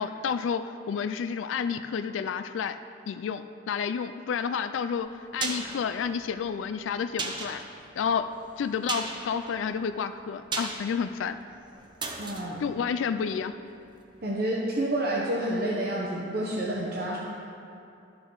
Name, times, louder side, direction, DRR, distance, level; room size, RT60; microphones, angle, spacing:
voice 1, 0.0-2.8 3.1-5.1 5.3-7.6 8.0-8.3 8.6-11.4 12.6-13.5, left 6 dB, 85° left, 10 dB, 0.3 m, -30 dB
sound 1, 5.0-13.9 14.1-14.2, right 3 dB, 25° right, 0.7 m, -38 dB
voice 2, 12.2-12.6 14.2-17.2, right 1 dB, 55° right, -4 dB, 0.9 m, -29 dB
12.0 x 6.0 x 3.9 m, 2.6 s
head